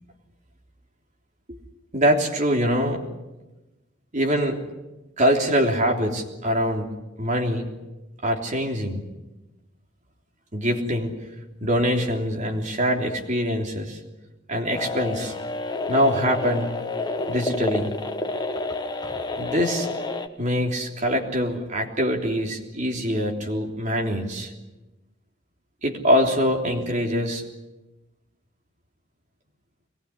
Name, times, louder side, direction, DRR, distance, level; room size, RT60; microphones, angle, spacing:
voice 1, 1.9-3.0 4.1-4.6 5.2-6.9 7.2-7.6 8.2-9.0 10.5-11.1 11.6-14.0 14.5-15.3 15.9-16.7 17.3-17.9 19.4-19.9 20.4-24.5 25.8-27.4, equal, 40° right, 1 dB, 3.4 m, -23 dB
sound 1, 14.7-20.3, left 2 dB, 20° left, 1.4 m, -29 dB
23.5 x 19.5 x 9.8 m, 1.1 s
head